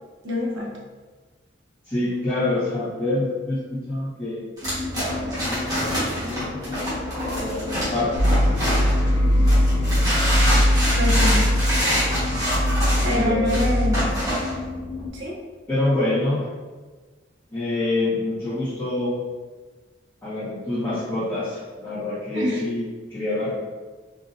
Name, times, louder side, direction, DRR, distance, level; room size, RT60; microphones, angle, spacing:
voice 1, 0.2-0.7 10.9-11.5 13.0-14.1 15.1-15.4 22.3-22.6, left 1 dB, 85° right, -2 dB, 0.9 m, -25 dB
voice 2, 1.9-4.5 5.1-6.8 7.4-8.3 9.6-10.2 13.1-13.6 15.7-16.5 17.5-19.2 20.2-23.5, left 2 dB, 15° left, -15 dB, 1.3 m, -26 dB
sound 1, 4.6-15.1, left 2 dB, 40° left, 1.3 m, -33 dB
sound 2, 4.6-9.1 9.5-14.5, equal, 20° right, 1.3 m, -26 dB
sound 3, 8.1-14.2, equal, 75° left, 0.5 m, -21 dB
3.9 x 2.8 x 2.6 m, 1.3 s
head